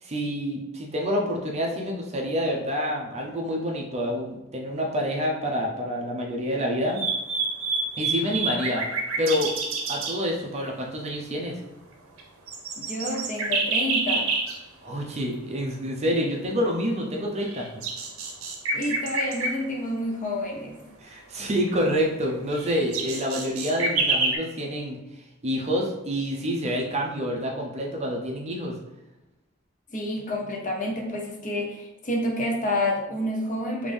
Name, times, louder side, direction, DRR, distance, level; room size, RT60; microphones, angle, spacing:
voice 1, 0.0-7.0 8.0-8.8 9.2-9.5 9.9-11.6 14.8-17.8 21.0-25.0 25.4-28.8, equal, 30° right, 0 dB, 0.6 m, -27 dB
sound 1, 6.9-10.2 12.2-12.3 12.5-14.6 16.8-16.9 17.4-19.5 21.7-21.8 22.3-24.4, right 3 dB, 80° right, 0.7 m, -27 dB
voice 2, 12.8-14.3 18.7-20.8 29.9-33.9, left 1 dB, 40° left, 0 dB, 0.6 m, -29 dB
3.6 x 2.5 x 3.3 m, 1.0 s
head